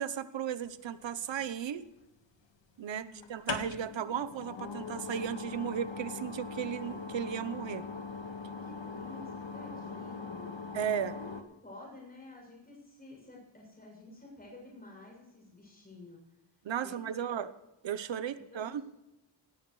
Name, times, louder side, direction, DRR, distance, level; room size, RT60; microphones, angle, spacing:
voice 1, 0.0-1.8 2.8-7.8 10.7-11.1 16.6-17.5 17.8-18.8, right 9 dB, 90° right, 14 dB, 1.0 m, -35 dB
sound 1, 1.0-1.8 3.2-11.4, left 5 dB, 90° left, 1.7 m, -41 dB
voice 2, 2.8-3.4 8.6-10.8 11.1-11.3 11.6-16.2 16.8-17.5 18.0-18.8, left 2 dB, 20° left, -1 dB, 7.1 m, -51 dB
18.5 x 16.5 x 3.2 m, 0.94 s
wide cardioid pair, 165°, 43 cm